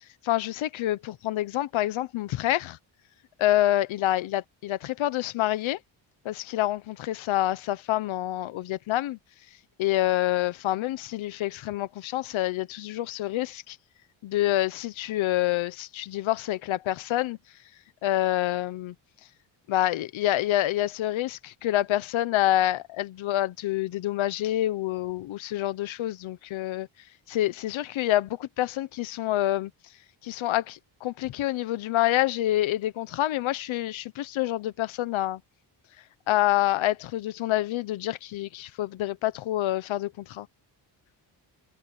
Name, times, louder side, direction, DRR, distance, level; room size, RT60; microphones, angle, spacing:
voice 1, 0.2-2.8 3.4-5.8 6.2-9.2 9.8-13.8 14.2-17.4 18.0-18.9 19.7-26.9 27.3-29.7 30.2-35.4 36.3-40.5, left 14 dB, 85° left, 1.1 m, -27 dB
cardioid pair, 170°, 46 cm